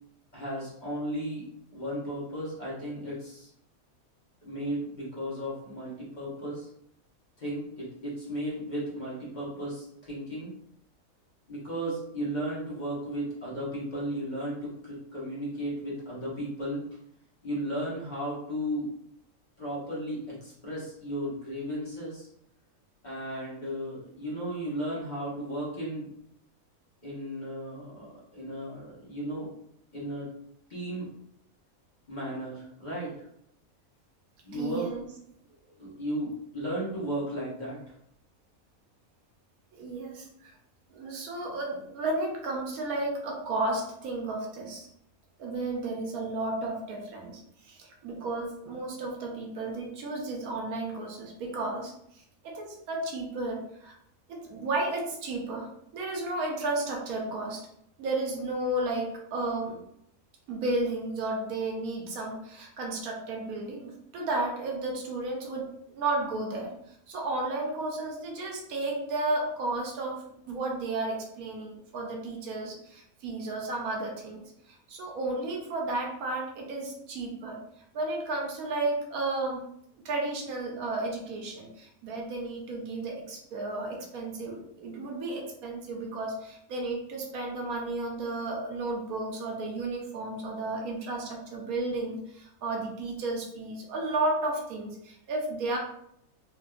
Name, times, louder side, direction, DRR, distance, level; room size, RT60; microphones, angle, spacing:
voice 1, 0.3-1.5 1.7-3.5 4.4-6.7 7.4-10.5 11.5-16.8 17.4-18.9 19.6-22.3 23.0-26.1 27.0-29.5 29.9-30.3 30.7-31.1 32.1-33.3 34.4-34.9 35.8-37.8, equal, 35° left, -7 dB, 1.0 m, -35 dB
voice 2, 34.5-35.1 39.7-40.5 40.9-44.9 45.4-53.9 54.3-57.6 58.0-59.8 60.5-66.7 67.1-77.6 77.9-79.6 80.0-95.8, right 2 dB, 80° right, 0 dB, 1.1 m, -33 dB
3.4 x 2.6 x 2.3 m, 0.73 s
omnidirectional pair, 1.5 m